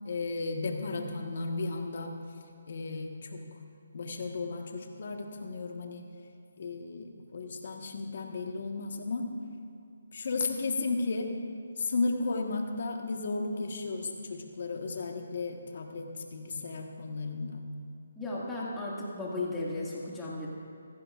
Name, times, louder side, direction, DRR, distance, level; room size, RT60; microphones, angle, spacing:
voice 1, 0.0-2.2 2.7-3.6 3.9-6.1 6.6-9.3 10.1-11.3 11.8-17.7, left 3 dB, 55° left, 3 dB, 1.4 m, -34 dB
voice 2, 18.2-20.5, left 2 dB, 10° left, -6 dB, 2.1 m, -35 dB
16.0 x 15.0 x 2.5 m, 2.6 s
hypercardioid pair, 160°, 0 cm